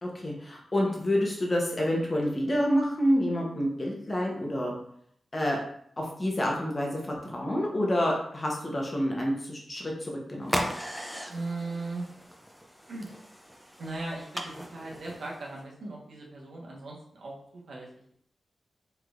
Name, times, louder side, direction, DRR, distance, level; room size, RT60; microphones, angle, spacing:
voice 1, 0.0-4.8 5.3-5.6 6.0-10.7, equal, 25° left, -1 dB, 0.8 m, -28 dB
sound 1, 10.4-15.6, equal, ahead, 0.4 m, -37 dB
voice 2, 11.3-12.3 12.9-13.1 13.8-18.1, right 2 dB, 75° right, -3 dB, 1.2 m, -38 dB
4.6 x 3.4 x 2.4 m, 0.67 s
wide cardioid pair, 160°, 0 cm